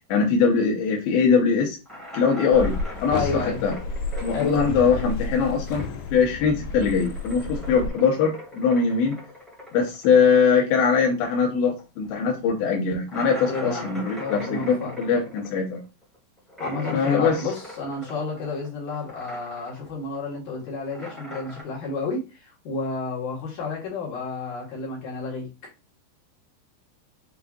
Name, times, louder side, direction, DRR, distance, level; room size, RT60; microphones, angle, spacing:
voice 1, 0.1-1.8 2.1-3.7 4.2-9.2 9.7-15.8 16.9-17.4, left 5 dB, 75° left, -1 dB, 2.5 m, -22 dB
sound 1, 1.8-6.1 6.4-11.5 11.7-11.8 12.2-12.3 13.1-18.7 18.9-19.9 20.1-21.6, left 1 dB, ahead, 0.4 m, -40 dB
sound 2, 2.5-7.9, left 3 dB, 90° left, 2.9 m, -32 dB
voice 2, 3.1-3.6 4.3-4.5 13.5-15.0 16.6-25.5, left 3 dB, 55° left, -3 dB, 2.5 m, -31 dB
7.0 x 3.1 x 2.4 m, 0.29 s
omnidirectional pair, 4.9 m